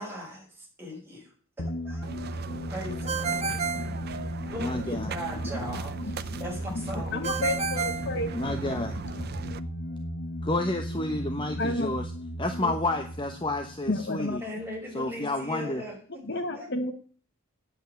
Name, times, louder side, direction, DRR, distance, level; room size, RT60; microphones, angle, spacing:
voice 1, 0.0-3.7 4.5-7.4 7.8-7.9 14.4-16.7, equal, 10° right, -3 dB, 5.9 m, -40 dB
sound 1, 1.6-14.8, equal, 85° left, 1.2 m, -36 dB
sound 2, 2.0-9.6, right 4 dB, 50° right, 0.6 m, -39 dB
Ringtone, 3.1-4.7 7.2-8.9, right 6 dB, 30° right, 1.0 m, -32 dB
voice 2, 4.6-5.1 8.3-9.0 10.4-12.1 12.4-14.4 14.9-15.8, left 2 dB, 25° left, 5 dB, 1.0 m, -30 dB
voice 3, 7.1-8.3 11.6-11.9 12.6-12.7 13.9-14.4 16.3-16.9, left 2 dB, 55° left, 8 dB, 1.3 m, -30 dB
9.3 x 8.1 x 9.3 m, 0.43 s
head